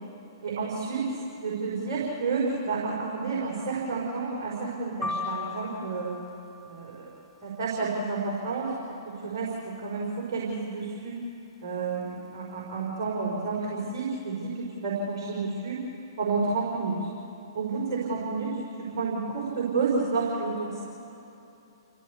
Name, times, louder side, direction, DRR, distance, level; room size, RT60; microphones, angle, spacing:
voice 1, 0.4-6.1 6.6-7.1 7.4-8.7 9.2-11.2 11.6-15.8 16.2-17.0 17.5-18.6 19.0-20.8, right 4 dB, 45° right, -5 dB, 4.7 m, -30 dB
sound 1, 5.0-7.2, left 4 dB, 10° left, 0.8 m, -36 dB
29.5 x 15.5 x 8.4 m, 2.9 s
figure-of-eight pair, 115°, 2 cm